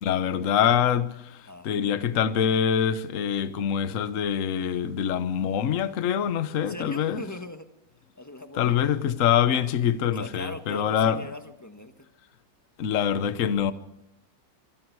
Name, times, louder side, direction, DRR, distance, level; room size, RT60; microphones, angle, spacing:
voice 1, 0.0-1.4 1.6-7.2 8.6-11.3 12.8-13.7, left 8 dB, 50° left, 1.2 m, -25 dB
voice 2, 6.6-7.7 8.1-8.8 10.1-12.1, left 1 dB, 10° left, 1.3 m, -40 dB
25.5 x 25.0 x 4.7 m
omnidirectional pair, 2.0 m